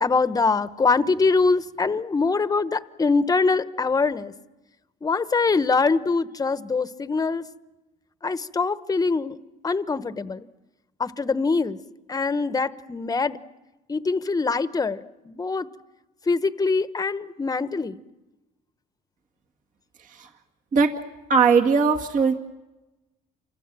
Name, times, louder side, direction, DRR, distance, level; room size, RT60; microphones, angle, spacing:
voice 1, 0.0-4.3 5.0-7.4 8.2-9.3 9.6-10.4 11.0-11.8 12.1-13.4 13.9-15.7 16.3-18.0, left 4 dB, 20° left, 1.0 m, -23 dB
voice 2, 21.3-22.3, right 5 dB, 50° right, 2.0 m, -19 dB
29.0 x 26.0 x 7.5 m
cardioid pair, 110°, 17 cm